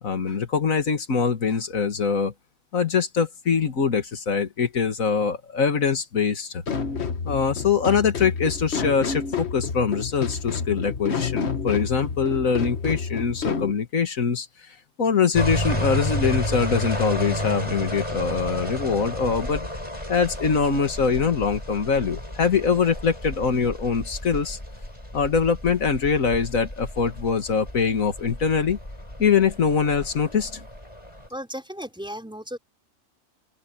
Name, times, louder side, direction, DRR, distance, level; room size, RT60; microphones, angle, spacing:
voice 1, 0.0-2.3 2.7-6.6 7.2-14.5 15.0-19.7 20.1-24.6 25.1-28.8 29.2-30.6, left 6 dB, 90° left, 2.2 m, -23 dB
sound 1, 6.7-13.7, left 5 dB, 55° left, 1.6 m, -29 dB
sound 2, 15.3-31.3, left 1 dB, 25° left, 5.6 m, -32 dB
voice 2, 31.3-32.6, equal, 5° right, 5.1 m, -35 dB
open air
omnidirectional pair, 1.4 m